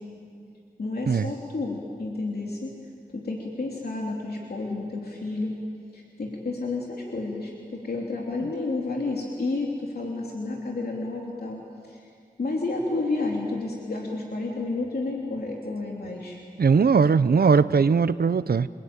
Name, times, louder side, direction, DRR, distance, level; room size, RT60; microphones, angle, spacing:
voice 1, 0.8-2.7 3.1-5.6 5.9-12.0 12.4-16.4, left 3 dB, 90° left, -2 dB, 3.1 m, -31 dB
voice 2, 16.6-18.7, right 5 dB, 80° right, 15 dB, 0.6 m, -19 dB
29.5 x 22.5 x 8.9 m, 2.3 s
wide cardioid pair, 55°, 16 cm